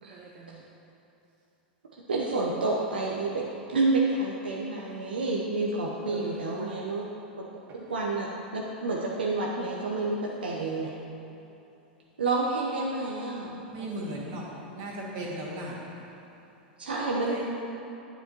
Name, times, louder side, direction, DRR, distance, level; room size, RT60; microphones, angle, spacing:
voice 1, 0.0-0.7 4.7-5.0 6.1-7.0 7.7-7.8 13.8-14.5 15.3-15.4 16.9-17.4, right 4 dB, 40° right, 0.8 m, -44 dB
voice 2, 2.1-7.0 7.4-7.5 7.7-10.9 12.2-13.6 16.8-17.4, right 3 dB, 80° right, 0.8 m, -29 dB
voice 3, 13.7-15.9, right 1 dB, 55° right, 2.1 m, -36 dB
9.9 x 8.7 x 3.0 m
figure-of-eight pair, 95°, 5 cm